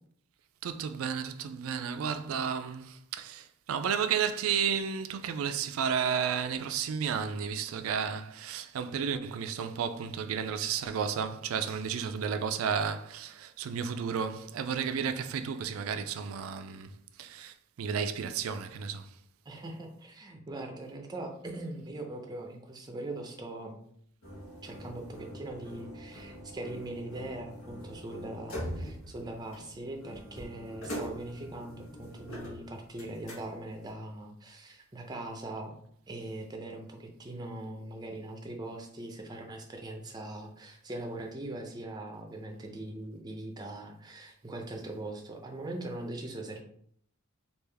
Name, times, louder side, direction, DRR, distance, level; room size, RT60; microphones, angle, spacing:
voice 1, 0.6-19.1, right 7 dB, 80° right, 0.3 m, -32 dB
voice 2, 19.5-23.8 24.6-35.8 36.1-46.6, right 1 dB, 20° right, 0.5 m, -41 dB
sound 1, 24.2-33.9, equal, 80° left, 1.0 m, -43 dB
3.3 x 2.4 x 3.4 m
head